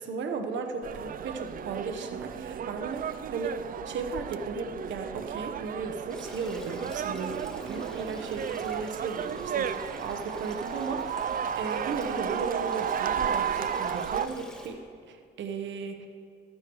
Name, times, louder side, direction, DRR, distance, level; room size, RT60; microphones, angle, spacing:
voice 1, 0.0-11.2 11.6-14.8 15.1-16.1, right 4 dB, 70° right, 5 dB, 1.1 m, -35 dB
sound 1, 0.8-14.3, right 8 dB, 45° right, 0.4 m, -33 dB
Stream, 6.1-14.7, equal, 5° left, 2.0 m, -48 dB
15.0 x 12.5 x 3.1 m, 2.3 s
cardioid pair, 90°, 20 cm